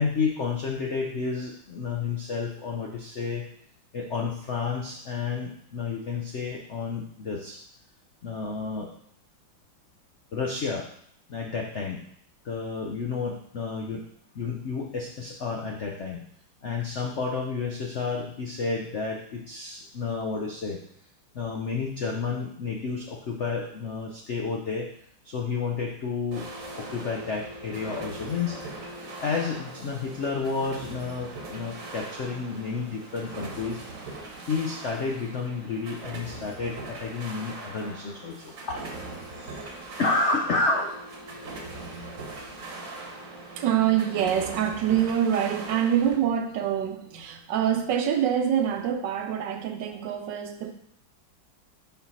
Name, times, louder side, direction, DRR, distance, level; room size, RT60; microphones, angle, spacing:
voice 1, 0.0-3.5 3.9-7.6 8.2-8.9 10.3-10.9 11.3-12.0 12.4-14.0 14.3-16.2 16.6-20.8 21.3-24.9 25.2-26.5 26.8-28.8 29.2-34.2 34.5-38.8 39.4-39.7 40.0-41.1, left 4 dB, 80° left, 1 dB, 0.6 m, -31 dB
sound 1, 26.3-46.1, right 2 dB, 50° right, 1.3 m, -40 dB
voice 2, 43.6-50.7, right 9 dB, 70° right, 7 dB, 1.2 m, -25 dB
5.7 x 4.4 x 5.5 m, 0.67 s
omnidirectional pair, 2.2 m